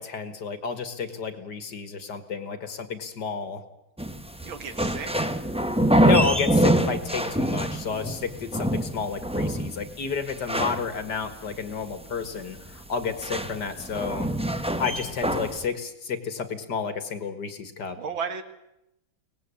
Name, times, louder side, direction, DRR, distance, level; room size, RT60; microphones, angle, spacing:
voice 1, 0.0-3.6 6.0-14.3 14.8-18.0, left 5 dB, 60° left, 9 dB, 2.2 m, -31 dB
sound 1, 4.0-15.7, right 1 dB, 5° right, 0.4 m, -25 dB
voice 2, 4.4-5.2 18.0-18.4, right 6 dB, 80° right, 8 dB, 2.5 m, -33 dB
23.5 x 19.0 x 8.4 m, 0.86 s
omnidirectional pair, 2.1 m